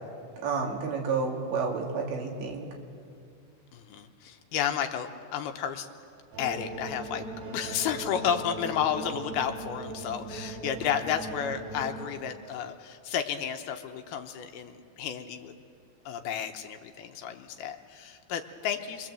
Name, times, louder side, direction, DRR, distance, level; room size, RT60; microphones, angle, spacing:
voice 1, 0.4-2.7, right 4 dB, 85° right, 0 dB, 4.8 m, -30 dB
voice 2, 3.7-5.9 6.4-7.3 7.5-15.5 16.1-19.1, left 8 dB, 75° left, 5 dB, 2.6 m, -32 dB
sound 1, 6.3-12.1, right 3 dB, 65° right, 4.2 m, -39 dB
27.5 x 22.5 x 7.6 m, 2.4 s
omnidirectional pair, 4.9 m